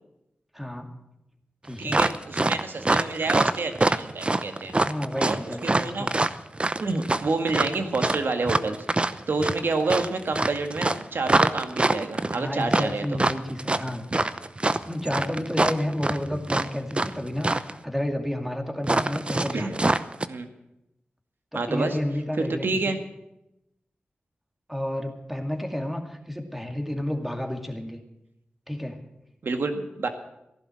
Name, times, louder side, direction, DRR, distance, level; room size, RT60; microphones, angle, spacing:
voice 1, 0.5-0.9 1.6-2.0 4.8-6.1 12.3-14.0 14.8-17.5 17.8-19.8 21.5-23.0 24.7-28.0 28.7-29.0, left 1 dB, 5° right, 4 dB, 2.4 m, -31 dB
voice 2, 1.8-4.7 5.2-6.1 6.8-13.2 19.5-19.8 20.3-20.5 21.5-22.0 22.4-23.0 29.4-30.1, right 3 dB, 70° right, 6 dB, 1.9 m, -28 dB
sound 1, 1.9-17.1 17.4-17.7 18.8-20.3, right 2 dB, 30° right, 0.8 m, -24 dB
14.5 x 11.5 x 7.6 m, 0.87 s
cardioid pair, 55°, 4 cm